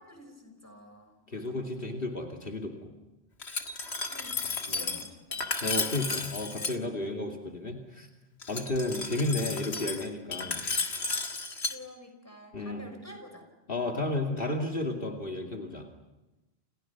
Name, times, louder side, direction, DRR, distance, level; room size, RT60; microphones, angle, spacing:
voice 1, 0.0-1.9 4.1-5.4 8.9-9.2 11.7-13.5, left 1 dB, 15° left, 5 dB, 5.7 m, -50 dB
voice 2, 1.3-2.9 4.7-5.0 5.6-8.1 8.5-10.6 12.5-12.8 13.7-15.9, left 2 dB, 60° left, 1 dB, 2.7 m, -33 dB
Glass, 3.4-6.7 8.4-11.7, left 3 dB, 90° left, 2.1 m, -33 dB
30.0 x 29.5 x 6.0 m, 1.0 s
omnidirectional pair, 1.1 m